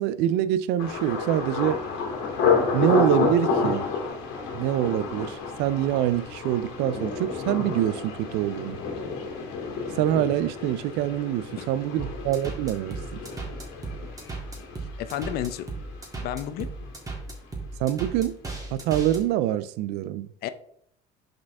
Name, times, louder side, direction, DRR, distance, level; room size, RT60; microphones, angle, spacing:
voice 1, 0.0-1.8 2.7-3.9 4.5-8.8 10.0-13.2 17.8-18.4 18.7-20.5, right 12 dB, 75° right, 0.4 m, -25 dB
Thunder, 0.8-16.6 16.8-17.4 17.9-18.1, left 5 dB, 85° left, 1.9 m, -30 dB
sound 1, 12.0-19.2, right 3 dB, 20° right, 1.7 m, -35 dB
voice 2, 15.0-15.7 16.2-16.7 20.4-20.5, left 11 dB, 65° left, 0.6 m, -31 dB
6.1 x 5.1 x 3.5 m
cardioid pair, 125°, 17 cm